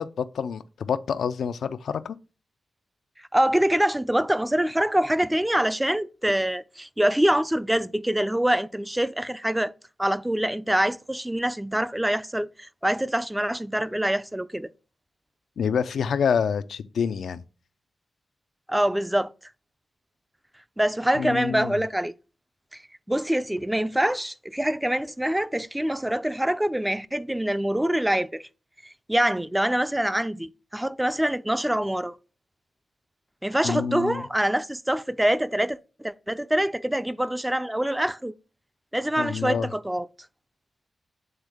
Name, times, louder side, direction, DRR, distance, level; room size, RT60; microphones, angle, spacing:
voice 1, 0.0-2.2 15.6-17.4 21.2-21.8 33.6-34.2 39.2-39.7, left 7 dB, 85° left, 0.4 m, -27 dB
voice 2, 3.3-9.7 10.0-14.7 18.7-19.3 20.8-22.1 23.1-28.4 29.1-32.1 33.4-38.3 38.9-40.1, right 1 dB, 10° right, 0.4 m, -25 dB
7.9 x 3.7 x 3.4 m
cardioid pair, 75°, 0 cm